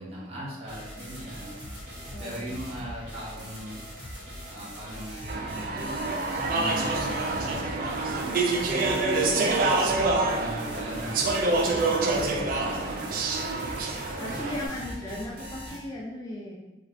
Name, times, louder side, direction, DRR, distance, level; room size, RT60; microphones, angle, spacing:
voice 1, 0.0-3.8 4.5-5.8 6.5-13.6 14.2-14.6, right 1 dB, 35° right, -6 dB, 0.8 m, -40 dB
sound 1, 0.7-15.8, equal, 85° right, 1.0 m, -41 dB
voice 2, 2.1-2.8 11.9-13.1 14.2-16.6, left 1 dB, 20° left, -4 dB, 0.4 m, -38 dB
Speech / Chatter, 5.3-14.7, right 3 dB, 50° right, 0.3 m, -27 dB
2.4 x 2.4 x 3.1 m, 1.0 s
head